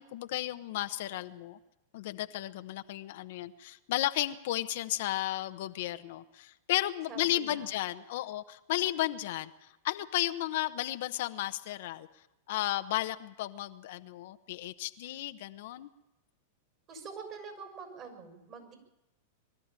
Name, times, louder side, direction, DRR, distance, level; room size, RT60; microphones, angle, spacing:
voice 1, 0.0-1.6 1.9-9.5 9.8-12.1 12.5-15.9, left 15 dB, 65° left, 9 dB, 0.9 m, -34 dB
voice 2, 7.1-7.7 16.9-18.8, right 5 dB, 40° right, 4 dB, 6.4 m, -45 dB
22.5 x 13.0 x 9.0 m, 0.97 s
hypercardioid pair, 115°, 0 cm